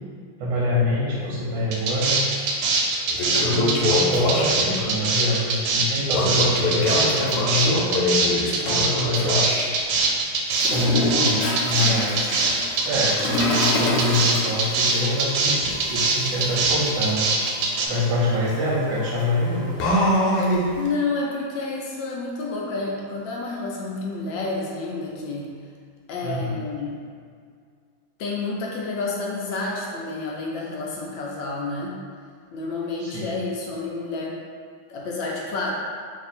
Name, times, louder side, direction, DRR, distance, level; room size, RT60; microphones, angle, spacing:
voice 1, 0.4-2.2 3.3-8.1 8.7-9.5 10.7-12.4 12.8-17.3 17.9-19.7 26.2-26.6 33.0-33.4, left 1 dB, 65° right, -6 dB, 1.3 m, -25 dB
sound 1, 1.7-17.9, right 4 dB, 85° right, 1.5 m, -22 dB
Toilet flush, 2.4-2.5 2.9-4.8 6.1-9.7 10.5-20.9, left 1 dB, 90° left, 1.7 m, -26 dB
voice 2, 20.8-25.5 26.1-27.0 28.2-32.0 32.5-34.4 34.9-35.7, left 3 dB, 75° left, -3 dB, 1.2 m, -29 dB
3.4 x 2.7 x 4.1 m, 2.1 s
omnidirectional pair, 2.4 m